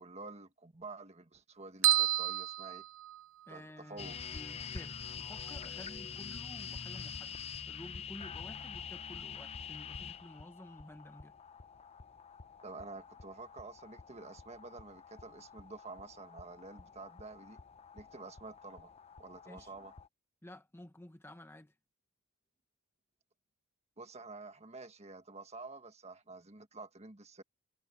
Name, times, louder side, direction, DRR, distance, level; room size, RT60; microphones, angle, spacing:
voice 1, 0.0-2.8 3.5-4.2 12.6-17.6 17.9-18.9 19.2-19.9 24.0-27.4, right 3 dB, 30° right, 1.7 m, -49 dB
sound 1, 1.8-3.6, right 14 dB, 60° right, 0.7 m, -30 dB
voice 2, 3.5-7.3 7.7-11.4 19.5-19.7 20.4-21.7, left 1 dB, 10° left, 1.0 m, -52 dB
sound 2, 4.0-20.1, left 6 dB, 30° left, 0.6 m, -46 dB
head